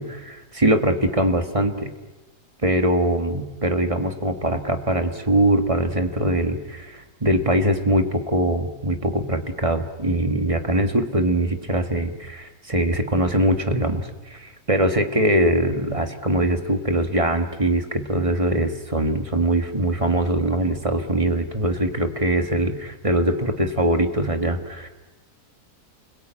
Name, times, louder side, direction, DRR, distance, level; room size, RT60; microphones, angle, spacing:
voice 1, 0.0-1.9 2.6-24.9, right 1 dB, 20° right, 7 dB, 1.4 m, -22 dB
29.0 x 21.0 x 8.9 m, 1.2 s
omnidirectional pair, 1.7 m